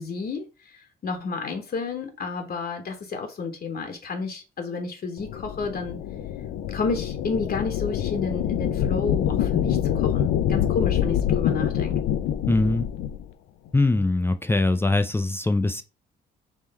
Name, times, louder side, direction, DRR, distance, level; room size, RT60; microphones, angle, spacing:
voice 1, 0.0-6.0 6.7-12.0, left 4 dB, 50° left, 1.1 m, -31 dB
sound 1, 5.2-13.2, left 10 dB, 85° left, 0.5 m, -25 dB
voice 2, 12.5-12.9 13.7-15.8, left 2 dB, 10° left, 0.4 m, -22 dB
3.7 x 3.1 x 4.2 m
cardioid pair, 90°, 20 cm